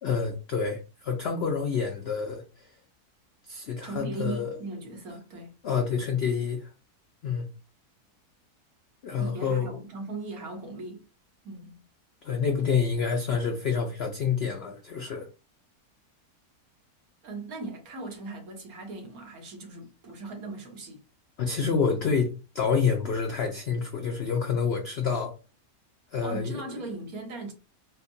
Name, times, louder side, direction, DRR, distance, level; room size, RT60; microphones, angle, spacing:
voice 1, 0.0-2.4 3.4-4.5 5.6-6.7 7.2-7.5 9.0-9.8 12.2-15.3 21.4-25.3 26.1-26.8, left 6 dB, 75° left, 0.5 m, -28 dB
voice 2, 3.8-5.5 9.2-11.0 11.4-11.8 17.2-21.0 26.2-27.5, right 3 dB, 65° right, 1.4 m, -38 dB
4.4 x 2.1 x 2.6 m
omnidirectional pair, 1.7 m